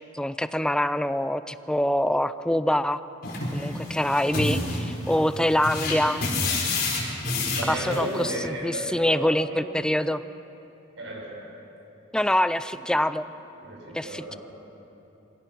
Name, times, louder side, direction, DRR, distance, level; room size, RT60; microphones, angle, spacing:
voice 1, 0.0-3.0 3.5-6.2 7.6-10.2 12.1-13.3 13.9-14.4, left 1 dB, 5° left, 13 dB, 0.4 m, -25 dB
sound 1, 3.2-8.3, left 2 dB, 50° left, 4.7 m, -29 dB
voice 2, 7.2-9.6 10.9-11.5 13.6-14.4, right 1 dB, 70° right, -2 dB, 5.8 m, -34 dB
24.5 x 17.0 x 6.2 m, 3.0 s
head